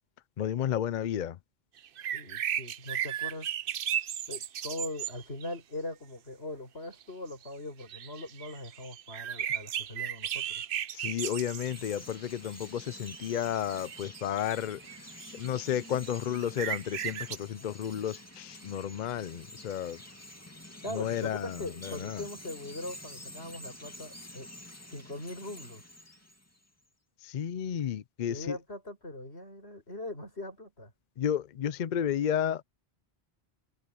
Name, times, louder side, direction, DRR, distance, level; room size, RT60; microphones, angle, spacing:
voice 1, 0.4-1.4 10.9-14.8 15.3-20.0 20.9-22.2 27.2-28.5 31.2-32.6, left 9 dB, 55° left, 0.6 m, -32 dB
sound 1, 1.8-5.6 6.9-7.0 7.3-7.5 7.8-12.0 12.6-17.4, right 10 dB, 65° right, 0.8 m, -36 dB
voice 2, 2.0-3.5 4.3-10.6 20.8-24.5 24.9-25.8 28.3-30.9, left 1 dB, 85° left, 6.9 m, -41 dB
Chirp tweet, 11.1-26.7, left 1 dB, 15° left, 2.4 m, -49 dB
omnidirectional pair, 1.1 m